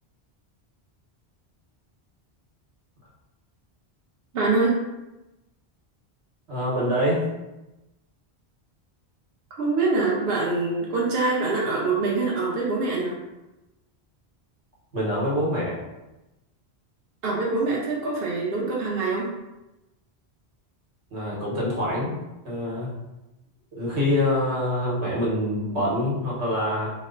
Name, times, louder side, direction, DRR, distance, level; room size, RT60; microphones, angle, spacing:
voice 1, 4.3-4.8 9.6-13.2 17.2-19.3, right 3 dB, 65° right, -4 dB, 0.9 m, -24 dB
voice 2, 6.5-7.3 14.9-15.8 21.1-22.2 22.4-22.9 23.7-26.9, left 1 dB, 85° right, -6 dB, 1.4 m, -25 dB
3.0 x 2.1 x 3.7 m, 0.98 s
omnidirectional pair, 1.1 m